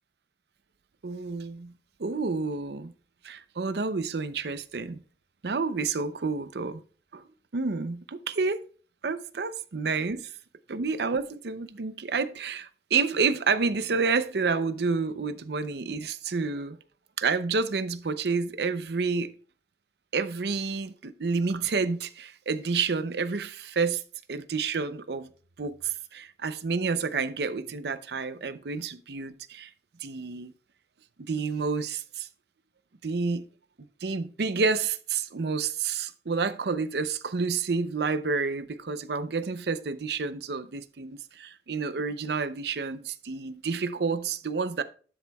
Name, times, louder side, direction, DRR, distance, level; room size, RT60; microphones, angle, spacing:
voice 1, 1.0-1.7 2.0-2.9 3.2-5.0 5.4-6.8 7.1-7.2 7.5-8.7 9.0-10.3 10.7-16.8 17.2-19.4 20.1-24.0 24.3-25.3 25.6-29.7 30.0-30.5 31.2-32.3 33.0-33.4 34.0-44.8, right 4 dB, 70° right, 0.6 m, -29 dB
12.0 x 6.9 x 2.3 m
head